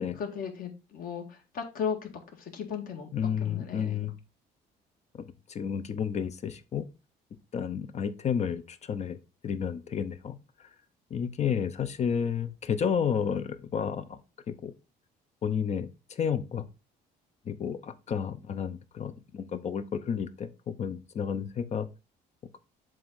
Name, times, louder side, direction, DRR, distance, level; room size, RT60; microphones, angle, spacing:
voice 1, 0.2-2.1 2.4-3.1 3.4-4.1, left 7 dB, 55° left, 3 dB, 1.8 m, -36 dB
voice 2, 3.1-4.1 5.5-6.9 7.5-9.2 9.4-10.4 11.1-14.2 14.5-14.7 15.4-16.7 17.5-21.9, left 7 dB, 40° left, 11 dB, 0.7 m, -31 dB
7.6 x 2.6 x 5.5 m, 0.29 s
cardioid pair, 110°, 17 cm